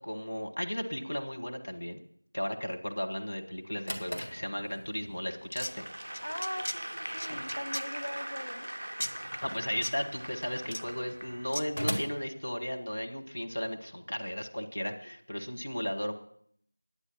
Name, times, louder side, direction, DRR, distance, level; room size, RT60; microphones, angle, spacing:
voice 1, 0.0-2.0 2.3-5.8 9.4-16.1, equal, 40° left, 2 dB, 1.2 m, -35 dB
Drawer open or close, 3.5-13.2, equal, 85° left, 2.4 m, -42 dB
sound 1, 5.4-5.7 6.1-6.8 7.2-7.9 9.0-9.1 9.8-9.9 10.6-10.8 11.5-11.6, left 1 dB, 20° left, 0.5 m, -36 dB
Applause / Crowd, 5.6-11.9, right 1 dB, 60° right, 0.4 m, -41 dB
voice 2, 6.2-8.7 15.0-15.1, equal, 65° left, 5 dB, 0.8 m, -40 dB
9.8 x 9.3 x 5.9 m, 0.66 s
figure-of-eight pair, 180°, 0 cm